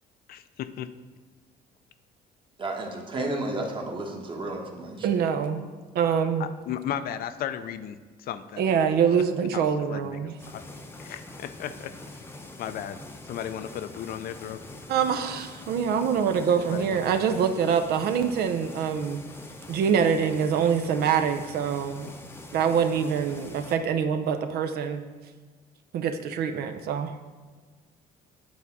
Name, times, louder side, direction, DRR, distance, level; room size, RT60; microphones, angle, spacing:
voice 1, 0.3-0.9 6.4-8.9 9.5-10.6 11.0-12.3 12.6-13.0 13.3-14.6 16.6-17.0, left 10 dB, 60° left, 11 dB, 0.4 m, -35 dB
voice 2, 2.6-5.1, right 2 dB, 30° right, 2 dB, 1.2 m, -32 dB
voice 3, 5.0-5.7 5.9-6.5 8.6-10.3 14.9-19.2 19.7-22.1 22.5-25.0 25.9-27.2, right 7 dB, 65° right, 7 dB, 0.6 m, -25 dB
sound 1, 10.4-23.8, left 2 dB, 15° left, 0.7 m, -44 dB
8.3 x 3.6 x 5.9 m, 1.5 s
cardioid pair, 110°, 17 cm